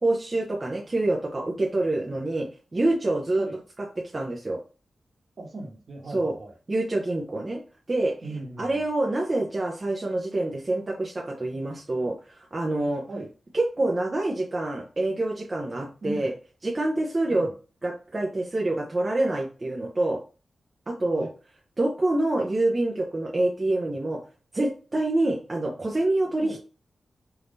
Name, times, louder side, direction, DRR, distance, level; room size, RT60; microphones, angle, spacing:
voice 1, 0.0-3.5 4.0-4.6 6.1-6.3 6.7-7.6 7.9-8.1 8.6-13.0 13.5-16.3 16.6-17.5 17.8-20.2 20.9-21.3 21.8-24.2 24.5-26.6, right 2 dB, 25° right, -1 dB, 0.8 m, -26 dB
voice 2, 5.4-6.5 8.2-8.8 12.9-13.3 16.0-16.3 17.3-17.5 21.1-21.3 26.4-26.6, right 2 dB, 50° right, 1 dB, 1.3 m, -37 dB
4.6 x 3.6 x 2.7 m, 0.34 s
wide cardioid pair, 140°, 0 cm